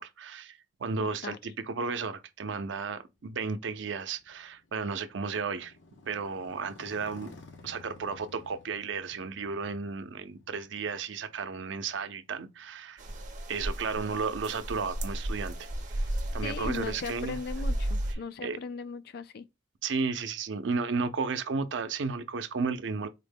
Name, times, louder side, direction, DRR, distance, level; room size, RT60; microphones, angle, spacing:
voice 1, 0.0-5.7 6.1-7.3 7.6-13.0 13.5-16.0 16.3-17.4 18.4-18.6 19.8-23.1, right 4 dB, 80° right, 0.5 m, -33 dB
voice 2, 1.0-1.4 16.4-19.4, left 5 dB, 55° left, 0.3 m, -38 dB
Motorcycle, 3.1-12.9, left 2 dB, 75° left, 0.7 m, -54 dB
sound 1, 13.0-18.2, right 1 dB, 45° right, 0.7 m, -34 dB
4.0 x 2.1 x 3.4 m
head